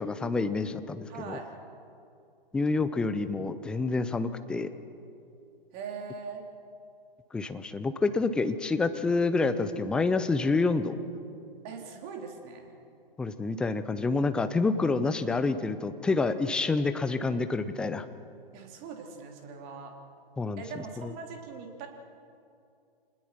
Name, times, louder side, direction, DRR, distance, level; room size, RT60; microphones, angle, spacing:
voice 1, 0.0-1.4 2.5-4.7 7.3-11.0 13.2-18.1 20.4-20.6, left 3 dB, 5° left, 11 dB, 0.4 m, -28 dB
voice 2, 1.1-1.5 5.7-6.4 11.6-12.7 18.5-19.9 20.6-21.9, right 5 dB, 30° right, 2 dB, 3.3 m, -41 dB
26.5 x 20.0 x 5.9 m, 2.6 s
figure-of-eight pair, 120°, 30 cm